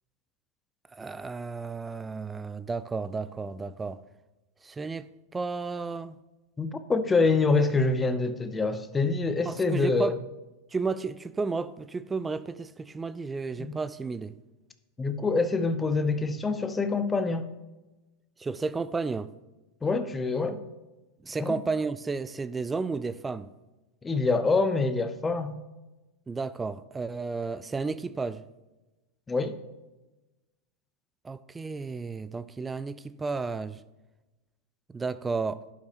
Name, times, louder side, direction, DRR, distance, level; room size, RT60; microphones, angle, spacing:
voice 1, 0.9-4.0 4.6-6.2 9.5-10.2 10.7-14.4 18.4-19.3 21.2-23.5 26.3-28.4 31.2-33.8 34.9-35.6, right 4 dB, 15° right, 0.4 m, -32 dB
voice 2, 6.6-10.2 13.6-13.7 15.0-17.5 19.8-20.6 21.4-21.6 24.0-25.6 29.3-29.5, left 3 dB, 15° left, 0.7 m, -26 dB
11.0 x 8.4 x 2.9 m
figure-of-eight pair, 90°, 0 cm